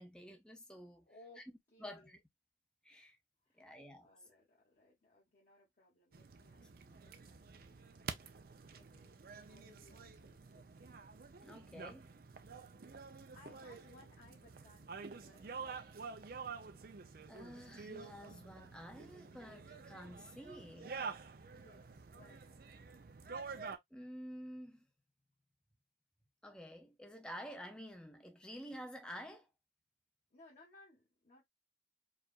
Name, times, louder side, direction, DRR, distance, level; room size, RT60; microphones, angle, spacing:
voice 1, 0.0-1.1 1.4-1.5 1.8-2.2 2.8-3.2 3.5-4.1 11.4-12.1 17.3-21.0 23.9-24.9 26.4-29.5, equal, 5° left, 0.7 m, -50 dB
voice 2, 1.0-1.4 1.7-2.2 3.4-7.9 8.7-11.0 13.3-15.7 21.6-22.6 30.3-31.4, left 2 dB, 50° left, 1.4 m, -64 dB
sound 1, 6.1-23.8, right 5 dB, 55° right, 0.5 m, -49 dB
4.8 x 2.4 x 2.4 m
head